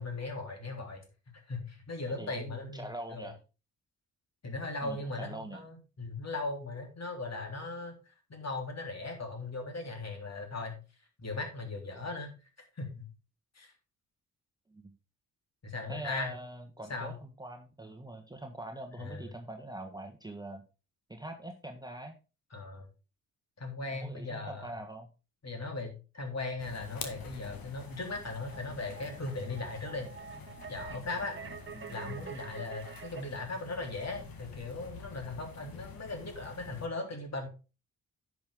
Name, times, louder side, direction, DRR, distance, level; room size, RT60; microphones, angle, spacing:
voice 1, 0.0-2.8 3.1-3.3 4.4-7.9 8.3-10.7 11.2-12.3 12.8-13.0 13.5-13.7 15.6-16.3 16.9-17.2 19.0-19.3 22.5-22.9 23.6-24.7 25.4-30.1 30.7-31.4 31.9-37.5, left 3 dB, 40° left, 3 dB, 3.4 m, -38 dB
voice 2, 2.1-3.4 4.8-5.6 14.7-14.9 15.9-20.6 21.1-22.1 23.9-25.1 31.7-32.3, right 1 dB, 10° right, 3 dB, 1.4 m, -43 dB
sound 1, 26.6-36.9, left 5 dB, 60° left, 2.0 m, -48 dB
sound 2, 27.6-33.2, right 6 dB, 30° right, 1.2 m, -47 dB
10.5 x 6.3 x 3.7 m, 0.31 s
hypercardioid pair, 40°, 40 cm